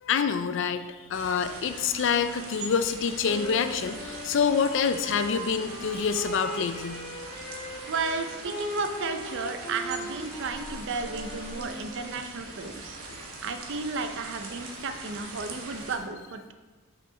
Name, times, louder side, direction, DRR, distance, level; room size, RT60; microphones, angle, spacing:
voice 1, 0.0-7.0 13.1-13.2, left 6 dB, 55° left, 9 dB, 0.4 m, -27 dB
sound 1, 1.1-16.0, right 2 dB, 75° right, 1.0 m, -42 dB
Wind instrument woodwind instrument, 3.2-12.2, right 1 dB, 25° left, 1.3 m, -40 dB
voice 2, 7.9-13.0 13.4-16.5, right 4 dB, 55° right, 7 dB, 0.5 m, -33 dB
6.2 x 5.5 x 3.8 m, 1.3 s
head